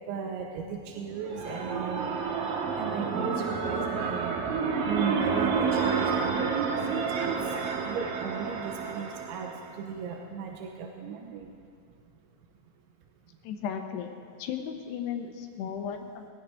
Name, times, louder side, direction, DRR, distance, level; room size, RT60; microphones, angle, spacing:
voice 1, 0.1-2.1 2.8-4.3 4.8-7.4 7.9-9.5 9.8-11.5, right 6 dB, 85° right, 2 dB, 3.4 m, -36 dB
sound 1, 1.0-9.8, right 5 dB, 65° right, 2.6 m, -30 dB
voice 2, 13.4-14.1 14.4-16.3, left 8 dB, 75° left, 4 dB, 2.8 m, -35 dB
23.0 x 16.5 x 3.5 m, 2.2 s
omnidirectional pair, 5.2 m